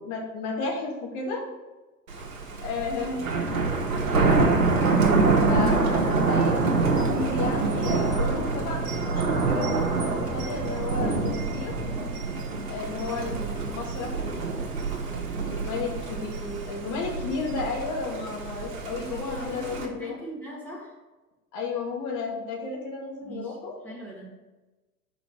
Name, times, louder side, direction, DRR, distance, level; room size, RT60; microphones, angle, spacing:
voice 1, 0.0-1.4 2.6-3.6 4.1-4.7 5.5-11.8 12.7-14.6 15.0-20.2 21.5-23.8, left 4 dB, 40° left, -1 dB, 2.1 m, -33 dB
Thunder, 2.1-19.9, right 3 dB, 60° right, 1.5 m, -26 dB
voice 2, 18.9-21.0 23.2-23.6 23.8-24.3, equal, 5° left, -6 dB, 2.2 m, -39 dB
5.9 x 5.4 x 6.0 m, 1.2 s
figure-of-eight pair, 90°, 47 cm